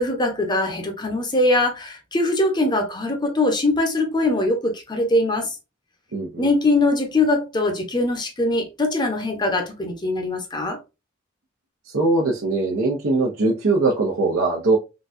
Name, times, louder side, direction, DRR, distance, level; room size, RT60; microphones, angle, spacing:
voice 1, 0.0-5.5 6.4-10.8, left 2 dB, 20° left, 0.7 m, -22 dB
voice 2, 6.1-6.5 11.8-14.8, right 3 dB, 85° right, 0.8 m, -21 dB
3.9 x 2.3 x 2.5 m
head